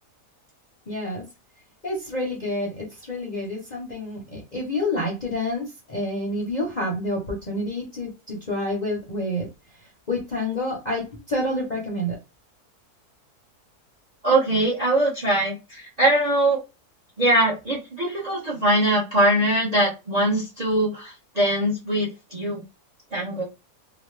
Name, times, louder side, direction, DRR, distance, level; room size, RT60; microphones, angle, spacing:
voice 1, 0.9-1.3 1.8-9.5 10.1-12.2, left 1 dB, 35° left, 0.8 m, -28 dB
voice 2, 14.2-16.6 17.2-22.6 23.1-23.5, right 1 dB, 30° right, 0.9 m, -22 dB
2.8 x 2.1 x 3.2 m
omnidirectional pair, 1.7 m